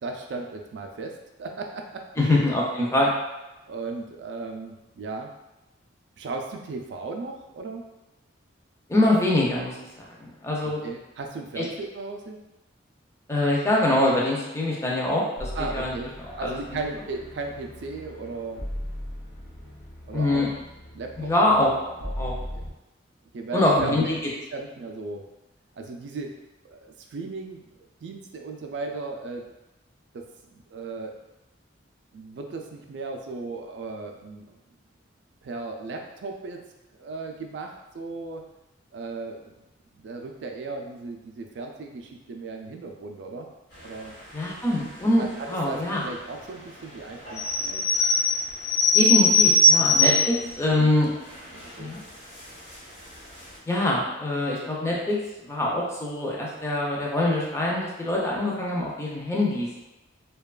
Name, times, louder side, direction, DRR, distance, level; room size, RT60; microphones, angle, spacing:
voice 1, 0.0-2.5 3.7-5.3 6.2-7.9 10.8-12.4 15.6-16.1 16.4-18.6 20.1-20.5 20.9-21.3 22.0-22.7 23.3-24.2 24.5-25.2 25.8-26.3 26.6-29.5 30.1-31.2 32.1-34.5 35.4-36.6 36.9-38.5 38.9-39.5 39.9-43.5 43.8-44.1 45.1-47.8 49.0-49.1 49.8-49.9 50.1-50.5 51.5-51.9, right 3 dB, 60° right, 3 dB, 0.3 m, -36 dB
voice 2, 2.2-3.1 8.9-10.8 11.6-11.7 13.3-15.9 16.4-16.8 20.1-20.5 21.2-21.7 22.2-22.3 23.5-24.2 44.3-46.0 48.9-51.1 51.8-52.0 53.7-59.7, left 1 dB, 15° left, -4 dB, 0.4 m, -24 dB
sound 1, 15.4-22.7, equal, 90° left, 0.9 m, -38 dB
sound 2, 47.2-50.4 51.0-51.1 51.3-51.7 52.4-52.7 53.1-53.2 53.4-53.5, left 2 dB, 55° left, 1.0 m, -20 dB
2.8 x 2.2 x 2.3 m, 0.99 s
head